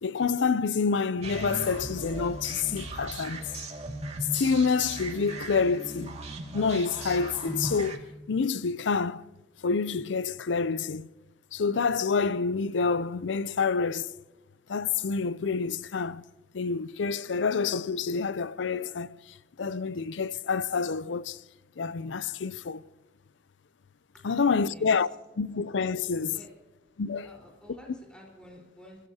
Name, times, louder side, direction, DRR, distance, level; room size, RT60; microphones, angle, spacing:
voice 1, 0.0-3.5 4.3-6.2 6.5-9.2 9.6-11.1 11.5-14.1 14.7-16.2 16.5-19.1 19.6-21.4 21.8-22.8 24.2-25.1 25.4-26.4 27.0-27.3, left 5 dB, 80° left, 0.5 m, -28 dB
sound 1, 1.2-8.0, right 2 dB, 35° right, 2.2 m, -38 dB
voice 2, 24.1-25.1 26.3-26.5 27.2-29.1, equal, 5° left, 4.4 m, -51 dB
27.5 x 16.0 x 2.8 m
head